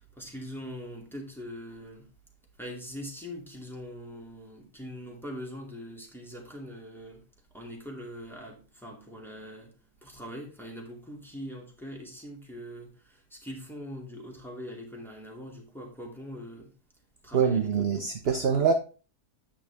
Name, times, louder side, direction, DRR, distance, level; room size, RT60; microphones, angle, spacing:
voice 1, 0.2-2.1 2.6-7.2 7.5-9.7 10.0-16.7 17.2-18.3, equal, ahead, 2.4 m, -42 dB
voice 2, 17.3-18.7, right 6 dB, 50° right, 0.8 m, -24 dB
9.3 x 6.3 x 3.5 m
omnidirectional pair, 1.8 m